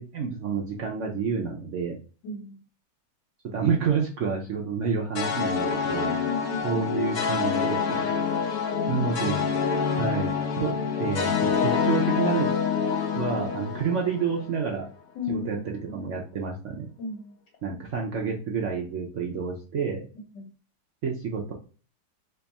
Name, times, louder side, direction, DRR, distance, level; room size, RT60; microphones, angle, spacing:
voice 1, 0.0-2.0 3.4-6.1 6.6-8.2 8.9-9.4 10.0-10.7 11.0-12.5 13.1-14.9 15.3-16.9 17.6-20.1 21.0-21.5, right 5 dB, 70° right, 0 dB, 0.7 m, -29 dB
voice 2, 2.2-2.6 6.0-6.9 15.1-16.0 17.0-17.4 20.3-20.4, left 4 dB, 85° left, 0 dB, 1.6 m, -35 dB
sound 1, 5.1-14.5, left 6 dB, 60° left, 1.3 m, -26 dB
3.4 x 2.3 x 4.0 m, 0.37 s
omnidirectional pair, 1.9 m